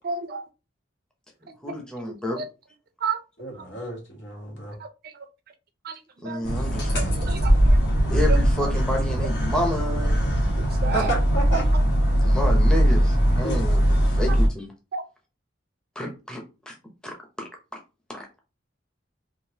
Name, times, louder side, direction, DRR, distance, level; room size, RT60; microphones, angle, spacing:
voice 1, 0.0-0.4 2.4-2.5 3.0-3.2 5.8-5.9 6.2-6.5 6.9-7.8 8.3-8.4 10.8-11.1 11.5-11.6 14.9-15.0, right 5 dB, 55° right, 0.5 m, -29 dB
voice 2, 1.6-2.4 6.2-7.1 8.1-10.2 12.1-14.7 16.0-16.7 17.0-17.5 18.1-18.3, left 1 dB, 5° left, 0.6 m, -30 dB
voice 3, 3.4-4.8 10.9-11.6 13.4-13.6, right 1 dB, 85° left, 1.8 m, -31 dB
sound 1, 6.4-14.5, equal, 65° left, 1.3 m, -20 dB
3.7 x 2.5 x 2.7 m
head